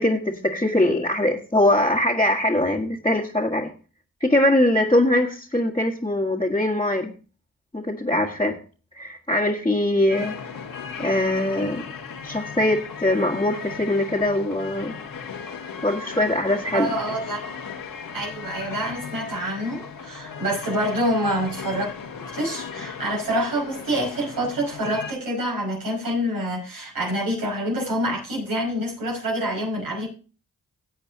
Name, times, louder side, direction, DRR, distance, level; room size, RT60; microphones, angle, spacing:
voice 1, 0.0-3.7 4.2-7.1 7.7-8.6 8.9-10.3 11.0-11.8 12.2-14.9 15.8-16.9, left 1 dB, 15° left, -2 dB, 1.6 m, -22 dB
sound 1, 10.1-25.1, left 6 dB, 75° left, 1.5 m, -36 dB
voice 2, 16.7-17.6 18.1-21.9 22.2-30.1, right 1 dB, 85° right, -4 dB, 5.8 m, -26 dB
17.0 x 7.9 x 2.8 m, 0.36 s
cardioid pair, 65°, 34 cm